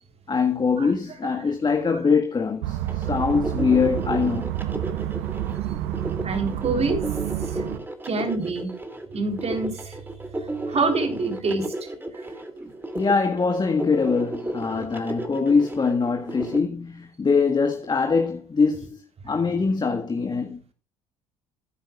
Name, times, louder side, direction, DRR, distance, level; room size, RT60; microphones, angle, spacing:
voice 1, 0.3-4.5 12.9-20.7, left 5 dB, 25° left, 1.7 m, -23 dB
sound 1, 2.6-7.8, right 13 dB, 65° right, 1.1 m, -29 dB
sound 2, 2.9-16.6, right 2 dB, 10° right, 2.5 m, -33 dB
voice 2, 6.2-7.0 7.4-7.6 8.0-8.7 9.1-10.0 10.3-11.9 12.1-12.3, right 3 dB, 35° right, 3.6 m, -27 dB
17.5 x 10.0 x 2.4 m
figure-of-eight pair, 60°, 18 cm